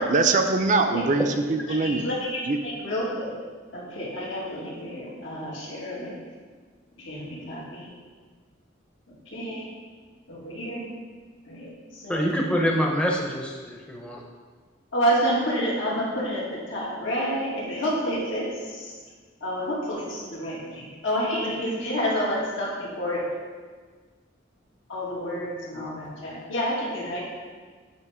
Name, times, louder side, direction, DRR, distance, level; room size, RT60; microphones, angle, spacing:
voice 1, 0.0-2.1 2.4-2.6, right 3 dB, 40° right, 5 dB, 0.5 m, -22 dB
voice 2, 1.7-3.4 3.7-6.1 7.0-7.9 9.3-9.6 10.3-10.8 11.5-11.7 12.0-12.2 14.9-18.9 19.4-23.2 24.9-27.3, equal, 90° left, -5 dB, 1.9 m, -29 dB
voice 3, 12.1-14.2, equal, 5° left, -1 dB, 0.6 m, -25 dB
9.0 x 3.0 x 4.9 m, 1.5 s
head